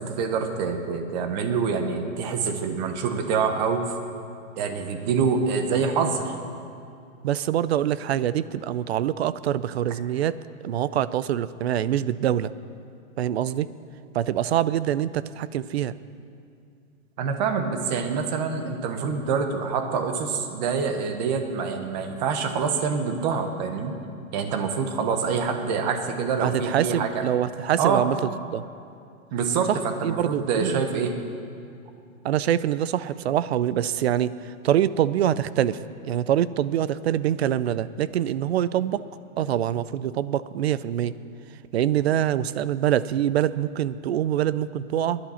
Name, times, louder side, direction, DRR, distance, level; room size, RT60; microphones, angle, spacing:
voice 1, 0.0-3.8 4.6-6.3 17.2-23.9 24.3-27.3 27.8-28.0 29.3-31.1, right 5 dB, 30° right, 6 dB, 1.1 m, -26 dB
voice 2, 7.2-10.3 10.6-12.5 13.2-13.7 14.1-16.0 26.4-28.6 29.7-29.8 30.0-30.8 32.2-35.8 36.0-39.0 39.4-41.2 41.7-45.2, right 11 dB, 50° right, 17 dB, 0.5 m, -25 dB
20.5 x 11.0 x 4.3 m, 2.4 s
hypercardioid pair, 165°, 42 cm